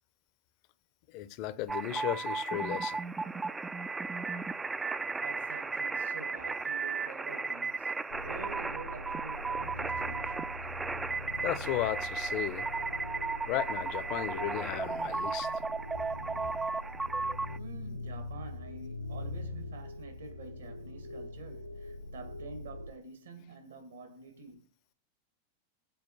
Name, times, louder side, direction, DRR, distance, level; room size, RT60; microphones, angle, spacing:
voice 1, 1.1-3.0 11.4-12.7 13.5-15.5, left 14 dB, 45° left, 0.7 m, -35 dB
sound 1, 1.7-17.6, right 4 dB, 10° right, 0.4 m, -35 dB
voice 2, 5.2-10.6 17.6-24.6, right 4 dB, 65° right, 2.1 m, -48 dB
sound 2, 8.1-22.9, left 2 dB, 75° left, 1.1 m, -43 dB
7.9 x 4.4 x 6.5 m
figure-of-eight pair, 90°, 0 cm